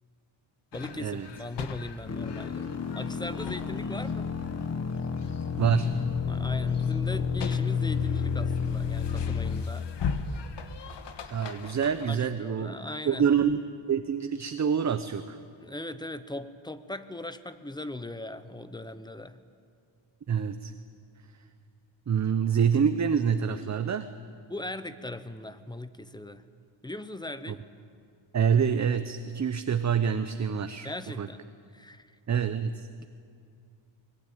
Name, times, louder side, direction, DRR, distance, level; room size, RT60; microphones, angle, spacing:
sound 1, 0.7-12.1, left 5 dB, 55° left, 1.6 m, -40 dB
voice 1, 0.7-4.3 6.3-9.9 12.1-13.3 15.6-19.4 24.5-26.5 26.8-27.6 30.8-32.2 33.0-33.1, left 1 dB, 10° left, 12 dB, 0.9 m, -39 dB
sound 2, 2.1-9.6, left 6 dB, 30° left, 1.3 m, -30 dB
voice 2, 5.6-5.9 11.3-12.7 13.1-13.6 13.9-15.4 20.3-20.7 22.1-24.1 27.5-27.6 28.3-30.9 31.2-31.3 32.3-33.0, right 7 dB, 35° right, 10 dB, 0.9 m, -26 dB
24.0 x 21.5 x 9.1 m, 2.2 s
cardioid pair, 130°, 49 cm